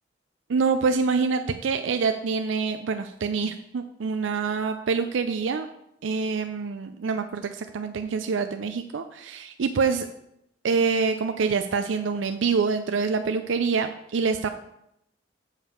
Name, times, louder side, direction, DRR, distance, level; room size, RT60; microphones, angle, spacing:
voice 1, 0.5-5.7 6.0-10.1 10.6-14.5, right 5 dB, 85° right, 7 dB, 0.5 m, -26 dB
7.2 x 4.9 x 6.4 m, 0.79 s
head